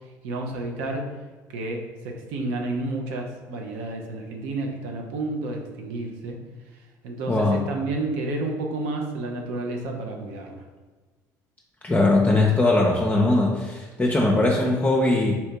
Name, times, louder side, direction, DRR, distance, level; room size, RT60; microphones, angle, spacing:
voice 1, 0.2-1.0 1.5-6.4 7.0-10.6, right 2 dB, 70° right, 1 dB, 0.7 m, -30 dB
voice 2, 7.3-7.6 11.8-15.3, left 2 dB, 15° left, -2 dB, 0.6 m, -20 dB
4.2 x 2.7 x 3.4 m, 1.3 s
hypercardioid pair, 60°, 10 cm